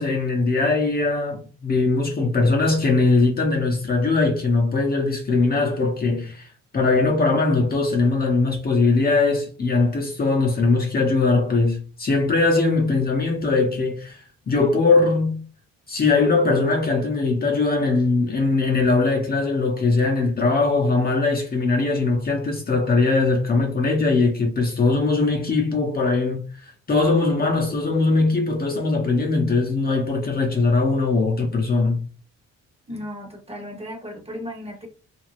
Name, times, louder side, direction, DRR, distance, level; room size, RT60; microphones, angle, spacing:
voice 1, 0.0-6.5 6.7-15.4 15.9-26.4 26.9-32.0, left 3 dB, 30° left, 0.7 m, -20 dB
voice 2, 32.9-34.9, equal, 20° right, 1.0 m, -35 dB
2.5 x 2.3 x 3.1 m
cardioid pair, 90°, 30 cm